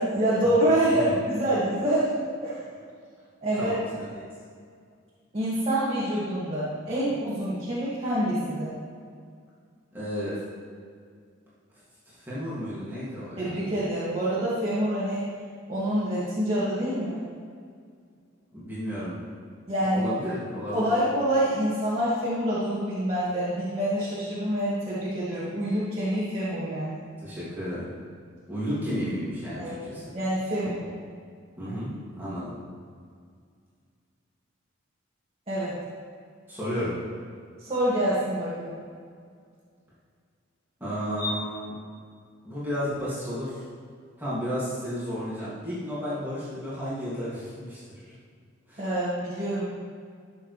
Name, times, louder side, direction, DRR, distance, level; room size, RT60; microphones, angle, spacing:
voice 1, 0.0-2.6 3.4-3.7 5.3-8.7 13.4-15.3 15.7-17.2 19.7-20.0 20.7-27.0 29.6-29.8 30.1-30.8 31.7-31.8 35.5-35.8 37.6-38.8 48.8-49.6, right 1 dB, 30° right, -10 dB, 2.1 m, -26 dB
voice 2, 3.6-4.2 9.9-10.4 12.1-13.4 18.5-19.2 19.8-20.9 27.2-27.9 28.5-30.0 30.7-30.9 31.6-32.5 36.5-36.9 40.8-41.8 42.4-43.6 44.2-48.1 48.7-48.8, equal, 10° right, -11 dB, 2.3 m, -32 dB
14.0 x 7.0 x 3.3 m, 2.1 s
head